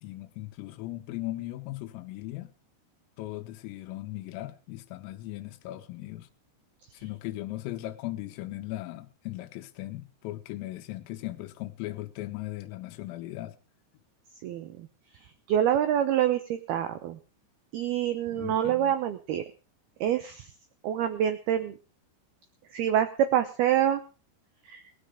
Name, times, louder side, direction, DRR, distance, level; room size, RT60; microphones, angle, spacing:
voice 1, 0.0-2.5 3.2-6.3 6.9-13.6 18.3-18.9, left 16 dB, 80° left, 6 dB, 3.7 m, -38 dB
voice 2, 14.4-14.9 15.5-17.2 17.7-19.4 20.0-20.5 20.8-21.8 22.7-24.0 24.7-24.8, right 10 dB, 80° right, 10 dB, 2.3 m, -26 dB
18.5 x 13.0 x 5.0 m, 0.35 s
omnidirectional pair, 5.9 m